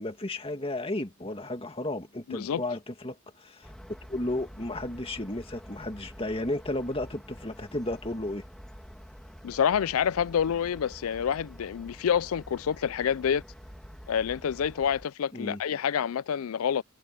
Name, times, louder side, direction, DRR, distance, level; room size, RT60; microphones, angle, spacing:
voice 1, 0.0-3.7 4.1-8.4 15.3-15.6, left 1 dB, 25° left, 2.1 m, -33 dB
voice 2, 2.3-2.6 9.4-13.4 14.1-16.8, left 8 dB, 75° left, 0.4 m, -27 dB
sound 1, 3.6-15.1, equal, 5° left, 1.7 m, -48 dB
head